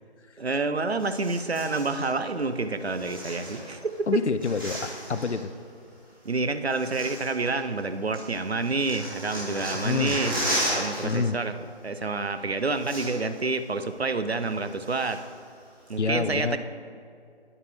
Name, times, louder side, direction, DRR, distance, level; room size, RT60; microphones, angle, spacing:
voice 1, 0.4-3.8 4.1-4.2 6.2-10.4 10.7-11.6 11.8-15.2 15.9-16.6, right 3 dB, 65° right, 10 dB, 0.7 m, -28 dB
sound 1, 1.0-2.1 2.8-3.9 4.2-5.4 6.2-6.3 6.7-7.8 8.1-11.1 11.4-11.6 12.4-12.5 12.7-13.4 13.8-13.9 14.4-15.3 15.9-16.0, equal, 20° right, 2.6 m, -34 dB
voice 2, 4.1-5.5 9.7-10.2 11.0-11.4 16.0-16.6, left 5 dB, 90° left, 12 dB, 0.6 m, -27 dB
9.8 x 9.7 x 3.5 m, 2.4 s
figure-of-eight pair, 180°, 33 cm